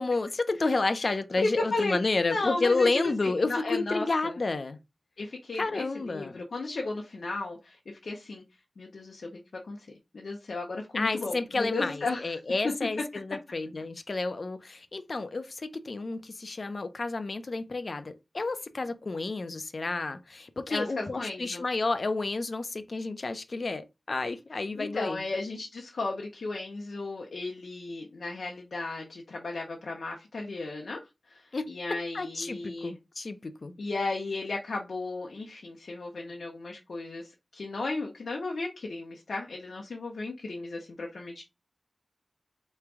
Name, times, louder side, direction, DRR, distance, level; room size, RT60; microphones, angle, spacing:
voice 1, 0.0-4.8 5.6-6.4 10.9-25.2 31.5-31.7 32.1-33.7, left 3 dB, 60° left, 0.6 m, -30 dB
voice 2, 1.0-2.0 2.3-4.4 5.2-8.4 8.8-9.4 9.7-9.9 10.1-12.4 12.6-12.7 20.7-21.6 24.7-31.0 31.3-33.0 33.8-41.4, left 3 dB, 90° left, 0.9 m, -34 dB
3.5 x 3.2 x 4.7 m
wide cardioid pair, 75°, 0 cm